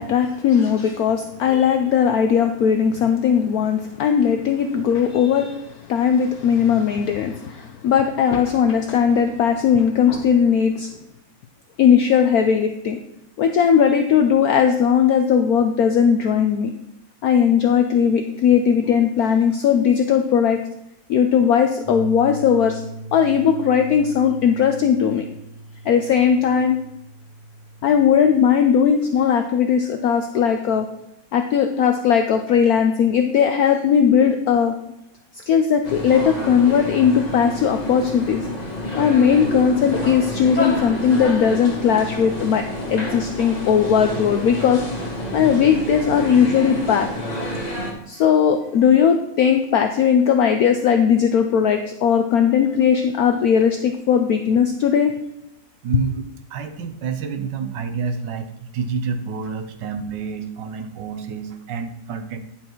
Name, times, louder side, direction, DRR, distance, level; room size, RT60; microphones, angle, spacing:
voice 1, 0.0-10.9 11.8-13.0 13.4-16.7 17.2-20.6 21.1-22.8 23.1-25.3 25.8-26.8 27.8-30.9 31.3-34.7 35.5-38.5 39.0-44.8 45.3-47.1 48.1-55.1, left 7 dB, 65° left, 6 dB, 1.0 m, -18 dB
sound 1, 21.8-28.5, right 2 dB, 10° right, 2.8 m, -38 dB
sound 2, 35.8-47.9, left 1 dB, 25° left, 1.7 m, -28 dB
voice 2, 55.8-56.2 56.5-62.4, right 5 dB, 75° right, 9 dB, 1.5 m, -28 dB
10.0 x 5.7 x 4.5 m, 0.82 s
omnidirectional pair, 1.9 m